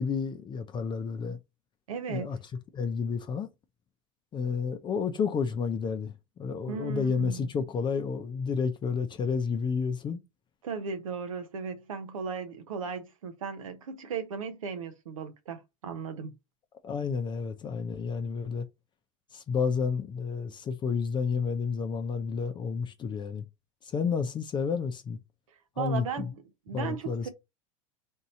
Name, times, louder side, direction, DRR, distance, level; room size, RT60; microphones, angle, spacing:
voice 1, 0.0-1.4 2.1-2.4 2.7-3.5 4.3-6.1 6.4-10.2 16.8-18.6 19.3-23.4 23.8-25.2 25.8-26.3 26.7-27.3, left 5 dB, 25° left, 0.6 m, -30 dB
voice 2, 1.9-2.4 6.7-7.5 10.6-16.3 25.8-27.3, right 6 dB, 85° right, 0.9 m, -36 dB
3.6 x 2.7 x 4.2 m
hypercardioid pair, 100°, 17 cm